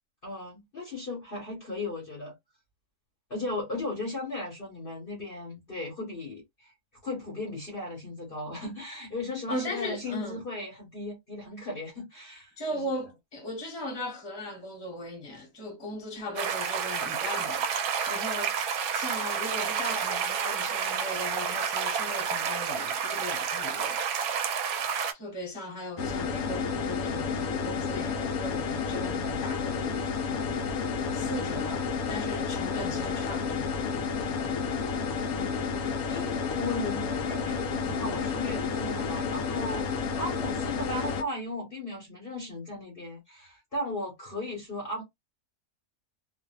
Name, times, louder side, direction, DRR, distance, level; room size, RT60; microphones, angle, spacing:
voice 1, 0.2-2.3 3.3-6.7 7.0-12.9 35.3-45.0, left 2 dB, 40° left, 1.0 m, -36 dB
voice 2, 9.5-10.4 12.6-17.7 18.1-18.6 18.9-24.0 25.1-30.3 31.1-33.8, left 1 dB, 20° left, 1.0 m, -38 dB
sound 1, 16.4-25.1, right 7 dB, 70° right, 1.0 m, -30 dB
sound 2, 26.0-41.2, left 5 dB, 70° left, 0.9 m, -31 dB
2.6 x 2.4 x 2.2 m
omnidirectional pair, 1.7 m